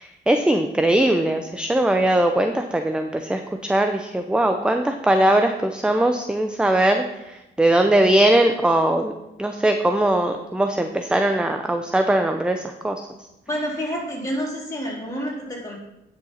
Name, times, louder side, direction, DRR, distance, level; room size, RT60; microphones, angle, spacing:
voice 1, 0.0-7.0 7.6-9.1 9.4-13.0, right 1 dB, 5° right, 6 dB, 0.6 m, -20 dB
voice 2, 13.5-15.8, equal, 15° left, -4 dB, 3.8 m, -28 dB
10.5 x 6.5 x 4.2 m, 0.93 s
cardioid pair, 90°, 20 cm